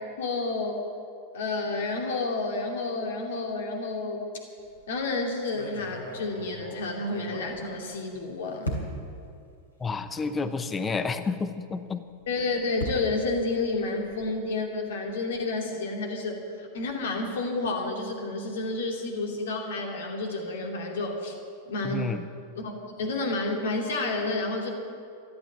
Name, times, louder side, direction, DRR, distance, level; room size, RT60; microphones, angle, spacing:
voice 1, 0.2-0.8 1.3-4.3 4.9-8.8 12.3-21.4 21.7-22.1 22.5-22.7 23.0-24.7, left 3 dB, 60° left, 2 dB, 2.5 m, -30 dB
sound 1, 4.6-4.9 5.4-8.2 8.6-9.2 9.9-10.0 10.4-10.5 12.1-14.4, equal, 75° left, 3.1 m, -38 dB
voice 2, 9.8-12.0 21.8-22.3, left 4 dB, 20° left, 11 dB, 0.9 m, -30 dB
13.5 x 12.0 x 7.5 m, 2.5 s
figure-of-eight pair, 90°, 0 cm